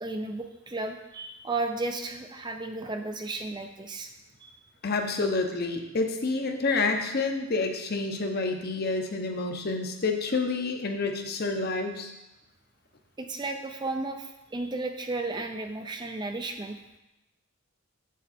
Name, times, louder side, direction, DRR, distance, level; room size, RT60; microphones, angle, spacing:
voice 1, 0.0-4.1 4.4-4.5 13.2-16.8, right 2 dB, 20° right, 5 dB, 0.5 m, -34 dB
voice 2, 4.8-12.1, left 3 dB, 45° left, 4 dB, 0.9 m, -28 dB
7.8 x 7.4 x 4.2 m, 0.95 s
head